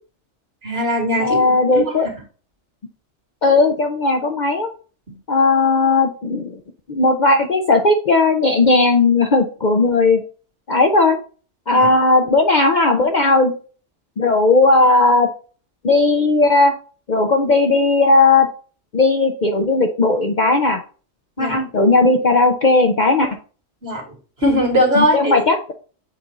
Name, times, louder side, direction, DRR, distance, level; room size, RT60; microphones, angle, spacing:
voice 1, 0.6-1.9 5.1-5.2 11.7-11.9 21.4-21.6 23.8-24.0 24.4-25.4, equal, 50° right, 0 dB, 2.2 m, -20 dB
voice 2, 1.2-2.1 3.4-4.7 5.3-6.6 6.9-10.2 10.7-11.2 11.7-13.5 14.2-15.3 15.8-16.7 17.1-18.5 18.9-20.8 21.4-23.3 24.9-25.7, left 3 dB, 45° left, 4 dB, 0.6 m, -16 dB
7.4 x 2.7 x 4.8 m, 0.38 s
omnidirectional pair, 1.3 m